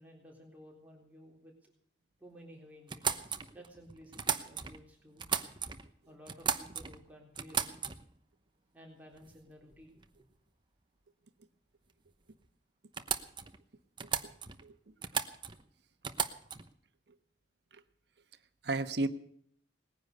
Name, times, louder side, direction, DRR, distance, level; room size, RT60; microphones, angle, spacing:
voice 1, 0.0-1.7 2.2-5.3 6.0-7.9 8.7-10.3, equal, 10° right, -2 dB, 3.8 m, -55 dB
sound 1, 2.9-4.8 5.2-5.9 6.3-7.0 7.4-8.2 9.2-9.4 9.7-10.1 12.1-12.2 12.4-12.5 12.9-13.6 14.0-14.7 15.0-15.6 16.0-16.7, right 7 dB, 25° right, 0.9 m, -36 dB
voice 2, 14.6-14.9 17.7-17.8 18.6-19.1, right 2 dB, 65° right, 9 dB, 1.1 m, -34 dB
19.5 x 10.0 x 6.7 m, 0.63 s
head